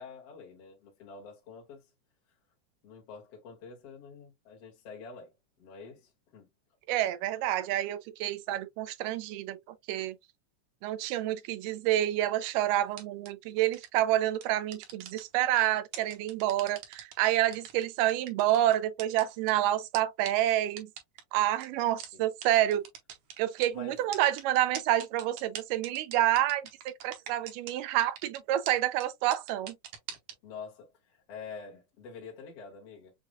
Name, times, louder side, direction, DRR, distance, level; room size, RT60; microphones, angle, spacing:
voice 1, 0.0-1.9 2.8-5.3 5.6-6.5 22.1-22.2 23.7-24.0 30.4-33.1, left 5 dB, 55° left, 2.2 m, -47 dB
voice 2, 6.9-9.6 9.9-10.2 10.8-20.9 21.3-22.9 23.4-29.8, right 13 dB, 90° right, 2.3 m, -28 dB
sound 1, 12.9-13.3 13.7-14.0 14.4-15.6 15.9-17.1 17.5-19.5 19.9-20.0 20.3-20.4 20.8-21.2 21.6-21.7 22.0-22.1 22.4-22.5 22.7-23.7 24.1-27.7 28.0-28.4 28.7-28.8 29.0-29.1 29.3-30.3, right 9 dB, 70° right, 2.2 m, -42 dB
6.5 x 2.4 x 2.2 m
omnidirectional pair, 3.7 m